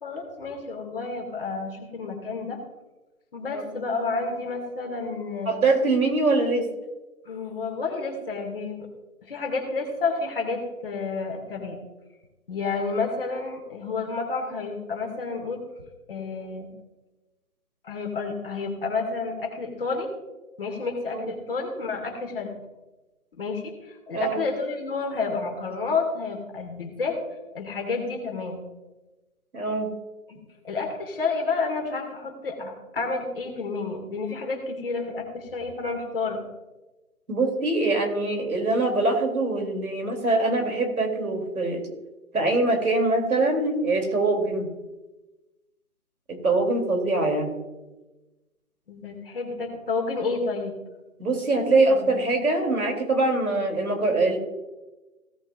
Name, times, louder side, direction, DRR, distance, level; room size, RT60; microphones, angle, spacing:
voice 1, 0.0-2.6 3.3-5.6 7.3-8.9 9.2-11.8 12.5-15.6 16.1-16.7 17.8-20.1 20.6-22.5 23.4-27.2 27.5-28.6 30.6-36.4 48.9-50.7 51.9-52.4, left 4 dB, 40° left, 3 dB, 2.1 m, -30 dB
voice 2, 3.5-3.8 5.5-6.7 21.1-21.3 24.1-24.4 29.5-29.9 37.3-41.9 42.3-44.7 46.3-47.6 51.2-54.4, right 2 dB, 80° right, 3 dB, 3.1 m, -23 dB
16.5 x 8.8 x 2.5 m, 1.1 s
figure-of-eight pair, 160°, 43 cm